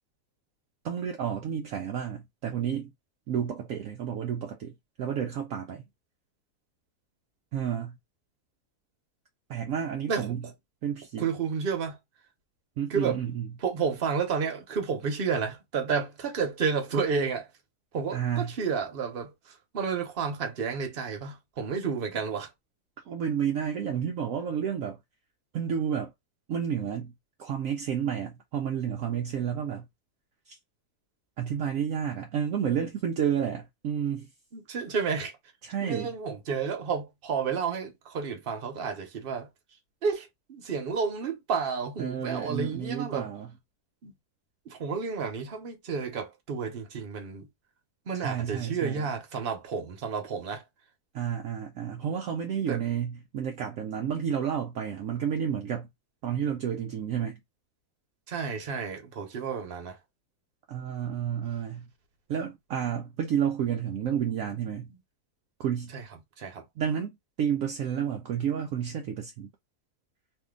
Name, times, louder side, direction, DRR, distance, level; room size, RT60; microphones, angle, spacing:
voice 1, 0.8-2.9 3.3-5.9 7.5-8.0 9.5-10.5 10.8-11.3 12.8-13.6 18.1-18.6 23.1-25.0 25.5-26.1 26.5-27.1 27.4-29.9 30.5-30.6 31.4-34.3 35.6-36.2 42.0-43.5 48.1-49.1 51.1-55.9 56.2-57.4 60.7-61.9 62.3-64.9 65.6-66.0 66.8-69.5, right 8 dB, 70° right, 0.9 m, -31 dB
voice 2, 11.2-12.0 12.9-13.2 13.6-17.5 17.9-19.3 19.7-22.5 34.5-35.3 35.8-39.5 40.0-43.3 44.0-44.1 44.7-47.5 48.1-50.6 52.7-52.8 58.3-60.0 65.9-66.0 66.4-66.6, right 5 dB, 45° right, 1.0 m, -31 dB
2.7 x 2.6 x 3.6 m
omnidirectional pair, 1.6 m